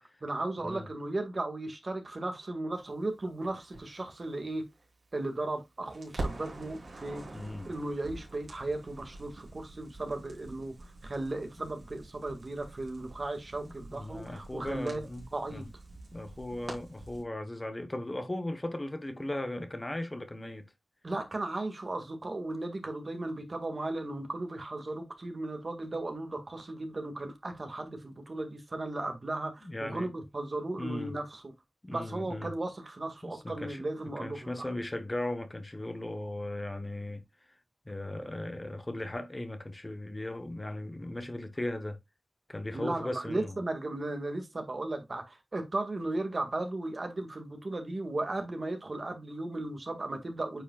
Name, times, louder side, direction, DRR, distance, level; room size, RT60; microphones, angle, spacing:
voice 1, 0.0-4.6 5.1-7.2 7.6-15.0 15.3-15.7 21.0-31.5 31.9-34.6 42.7-50.6, right 2 dB, 50° right, 1.8 m, -36 dB
Crackle, 3.4-5.6 5.9-17.2, right 2 dB, 85° right, 3.0 m, -45 dB
voice 2, 7.3-7.7 13.6-15.6 16.1-20.7 29.6-30.1 30.8-31.1 31.8-32.5 33.2-37.2 37.5-37.6 37.9-42.0 42.5-43.5, left 1 dB, 25° left, 1.0 m, -37 dB
8.8 x 5.0 x 2.3 m
wide cardioid pair, 80°, 0 cm